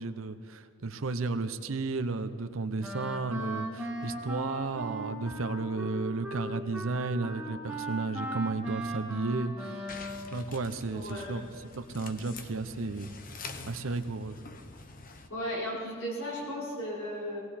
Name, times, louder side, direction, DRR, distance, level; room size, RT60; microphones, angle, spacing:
voice 1, 0.0-10.0 10.3-13.1 13.4-14.4, right 3 dB, 85° right, 10 dB, 0.8 m, -33 dB
Wind instrument woodwind instrument, 2.8-10.3, right 1 dB, 5° right, 1.6 m, -38 dB
sound 1, 9.9-15.3, left 3 dB, 45° left, 0.9 m, -46 dB
voice 2, 10.8-11.5 15.3-17.4, equal, 75° left, -5 dB, 4.7 m, -36 dB
18.5 x 17.0 x 4.3 m, 2.6 s
head